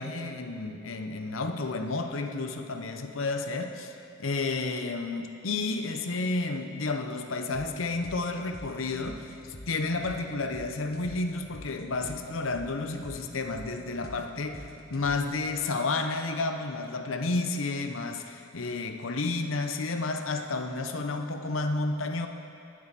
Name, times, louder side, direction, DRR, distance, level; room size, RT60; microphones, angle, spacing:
voice 1, 0.0-9.3 9.7-22.3, left 3 dB, 90° left, 6 dB, 0.8 m, -31 dB
sound 1, 7.5-15.5, left 1 dB, 50° left, 1.1 m, -47 dB
19.0 x 7.8 x 4.1 m, 2.5 s
head